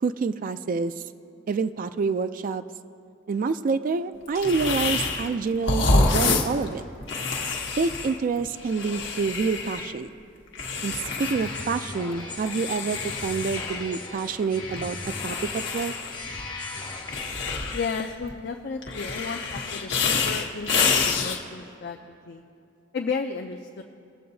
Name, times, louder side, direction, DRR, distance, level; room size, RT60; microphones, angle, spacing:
voice 1, 0.0-0.9 1.5-2.6 3.3-6.8 7.8-10.1 10.8-15.9, right 4 dB, 45° right, 11 dB, 0.3 m, -27 dB
sound 1, 4.4-5.3 5.6-10.0 10.5-11.7 12.0-13.9 14.7-16.5 17.1-18.3 18.8-21.4, left 4 dB, 75° left, 1.1 m, -27 dB
sound 2, 11.0-17.5, left 3 dB, 25° left, 1.2 m, -38 dB
voice 2, 17.7-22.4 22.9-23.8, left 5 dB, 60° left, 3 dB, 0.5 m, -33 dB
20.5 x 7.6 x 2.7 m, 2.5 s
head